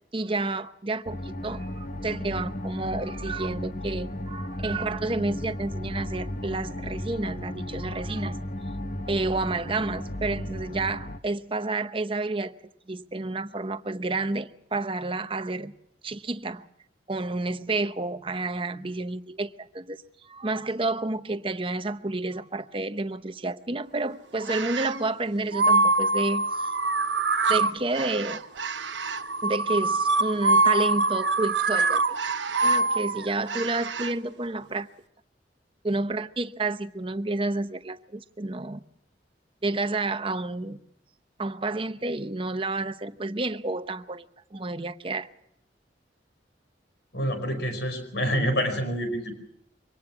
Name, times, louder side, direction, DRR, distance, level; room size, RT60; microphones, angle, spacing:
voice 1, 0.1-8.4 9.1-12.6 12.9-15.7 16.0-16.7 17.1-26.7 27.5-28.4 29.4-32.2 32.6-34.9 35.8-38.8 39.6-40.8 41.4-44.3 44.5-45.3, right 2 dB, 30° right, 0.8 m, -30 dB
sound 1, 1.1-11.2, left 1 dB, 45° left, 1.1 m, -35 dB
sound 2, 24.4-25.0 25.5-34.1, right 3 dB, 90° right, 1.0 m, -24 dB
voice 2, 47.1-49.4, equal, 70° left, 5.0 m, -27 dB
24.5 x 18.5 x 6.0 m
head